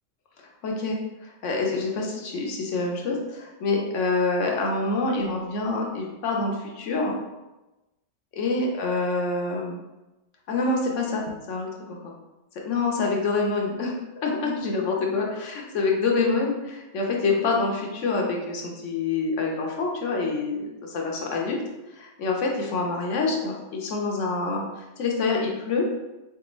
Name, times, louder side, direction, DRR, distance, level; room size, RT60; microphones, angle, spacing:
voice 1, 0.6-7.1 8.4-9.8 10.5-12.1 12.7-13.9 14.2-21.6 21.9-25.8, left 3 dB, 75° left, 0 dB, 1.0 m, -26 dB
3.8 x 3.4 x 3.0 m, 1.0 s
omnidirectional pair, 1.3 m